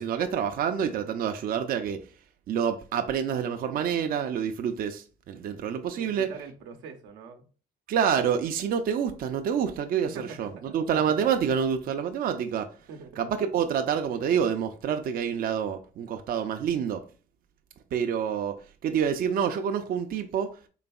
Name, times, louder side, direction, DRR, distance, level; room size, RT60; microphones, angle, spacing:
voice 1, 0.0-2.0 2.5-6.3 7.9-12.7 13.2-17.0 17.9-20.6, right 8 dB, 55° right, 0.4 m, -27 dB
voice 2, 5.9-7.5 10.0-10.5 12.9-13.1, right 5 dB, 90° right, 0.7 m, -43 dB
3.8 x 3.4 x 2.3 m
cardioid pair, 95°, 18 cm